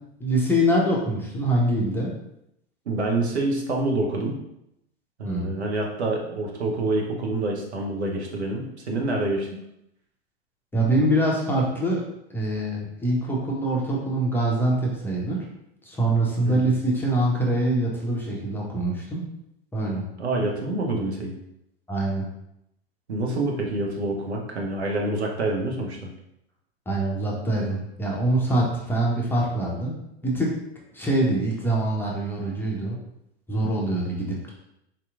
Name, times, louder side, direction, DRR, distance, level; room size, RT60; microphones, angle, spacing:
voice 1, 0.2-2.1 5.2-5.5 10.7-12.0 12.3-15.4 15.8-19.2 19.7-20.0 21.9-22.3 26.9-29.9 30.2-30.5 30.9-33.0 33.5-34.5, right 1 dB, 5° left, -3 dB, 0.6 m, -24 dB
voice 2, 2.9-4.4 5.2-9.6 16.4-16.7 20.2-21.3 23.1-26.1, right 2 dB, 80° right, 0 dB, 0.8 m, -27 dB
3.8 x 2.8 x 2.4 m, 0.81 s
figure-of-eight pair, 95°, 33 cm